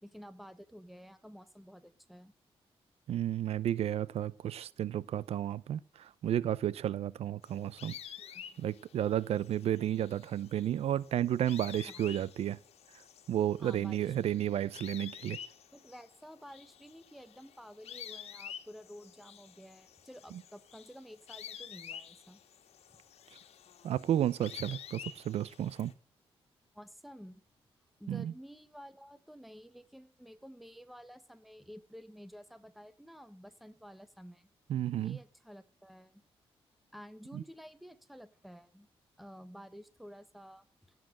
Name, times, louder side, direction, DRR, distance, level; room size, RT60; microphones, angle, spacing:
voice 1, 0.0-2.3 8.2-8.6 11.8-12.0 13.6-14.1 15.7-22.4 26.7-27.4 28.0-34.5 35.0-36.1 36.9-38.9 39.2-40.7, equal, ahead, 1.3 m, -51 dB
voice 2, 3.1-7.9 8.6-12.6 13.3-15.4 23.8-25.9 28.1-28.3 34.7-35.2 37.3-37.4, right 11 dB, 80° right, 0.6 m, -32 dB
sound 1, 7.4-25.9, left 9 dB, 85° left, 1.7 m, -50 dB
16.5 x 7.6 x 7.7 m
wide cardioid pair, 130°, 10 cm